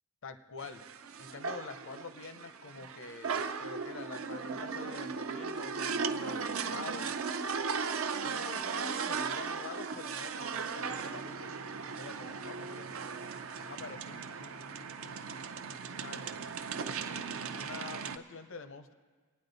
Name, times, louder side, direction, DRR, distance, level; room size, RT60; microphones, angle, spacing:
voice 1, 0.2-0.8 1.2-7.1 8.2-13.0 13.6-16.6 17.5-18.9, left 4 dB, 60° left, 10 dB, 0.7 m, -47 dB
sound 1, 0.6-18.2, right 5 dB, 65° right, 0.6 m, -37 dB
23.5 x 9.4 x 4.0 m, 1.5 s
head